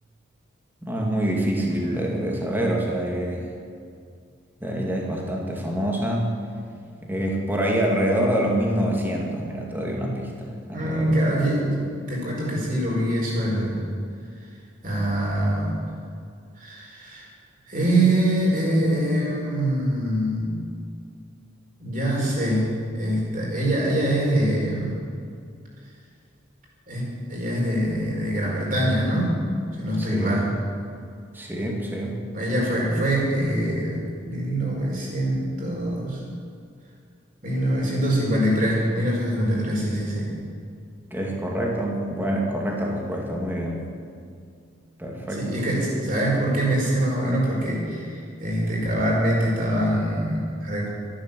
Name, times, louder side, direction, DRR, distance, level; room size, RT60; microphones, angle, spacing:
voice 1, 0.8-3.5 4.6-6.3 7.0-11.3 30.0-30.5 31.3-32.2 41.1-43.8 45.0-45.6, right 1 dB, 10° right, -1 dB, 2.2 m, -26 dB
voice 2, 10.7-13.8 14.8-15.8 16.6-17.3 17.7-20.7 21.8-25.0 26.9-29.4 29.8-30.5 32.3-36.2 37.4-40.3 45.4-50.9, right 1 dB, 40° right, -4 dB, 5.0 m, -24 dB
13.5 x 11.5 x 7.5 m, 2.3 s
head